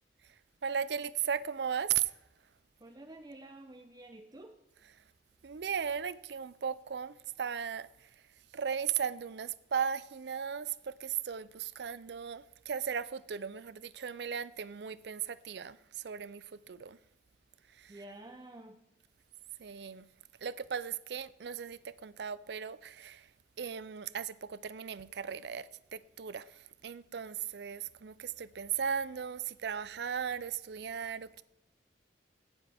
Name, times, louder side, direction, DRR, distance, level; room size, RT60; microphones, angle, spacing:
voice 1, 0.6-2.1 5.4-7.9 8.5-17.0 17.8-18.0 19.6-20.1 20.4-23.3 23.6-31.4, right 7 dB, 70° right, 0.5 m, -37 dB
voice 2, 2.8-4.6 17.9-18.8, right 1 dB, 25° right, 0.6 m, -50 dB
17.0 x 7.2 x 3.5 m
head